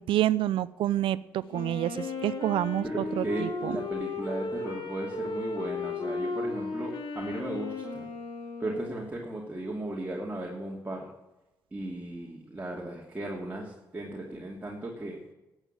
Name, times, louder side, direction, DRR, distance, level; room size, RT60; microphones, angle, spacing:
voice 1, 0.0-3.8, right 13 dB, 70° right, 19 dB, 0.4 m, -28 dB
Wind instrument woodwind instrument, 1.5-9.2, left 3 dB, 65° left, 2.8 m, -35 dB
voice 2, 2.8-8.1 8.6-11.0 11.7-15.2, right 1 dB, 20° right, -3 dB, 2.8 m, -36 dB
12.0 x 8.1 x 7.4 m, 0.99 s
hypercardioid pair, 45°, 9 cm